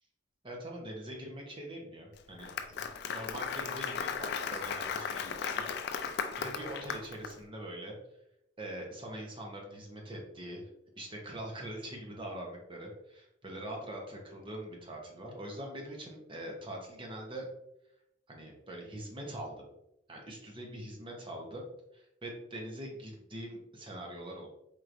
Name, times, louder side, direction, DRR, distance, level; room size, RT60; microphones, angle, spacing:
voice 1, 0.4-2.5 2.8-8.0 8.6-10.7 11.0-17.5 18.3-19.6 20.1-21.7 21.9-24.5, right 1 dB, 30° right, 0 dB, 0.9 m, -43 dB
Applause, 2.2-7.3, left 6 dB, 60° left, 0.4 m, -36 dB
4.5 x 3.0 x 2.5 m, 0.81 s
head